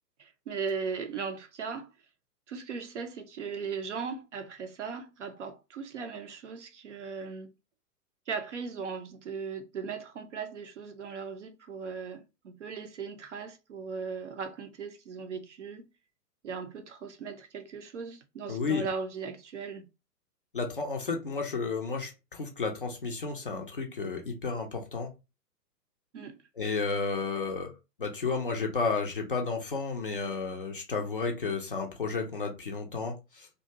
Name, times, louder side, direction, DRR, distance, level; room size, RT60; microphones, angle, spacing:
voice 1, 0.2-1.9 2.5-7.5 8.3-15.9 16.4-19.9 26.1-26.4, right 5 dB, 50° right, 0.5 m, -38 dB
voice 2, 18.5-18.8 20.5-25.1 26.6-27.7 28.0-33.5, left 4 dB, 35° left, 0.4 m, -32 dB
2.6 x 2.2 x 2.7 m
figure-of-eight pair, 115°, 48 cm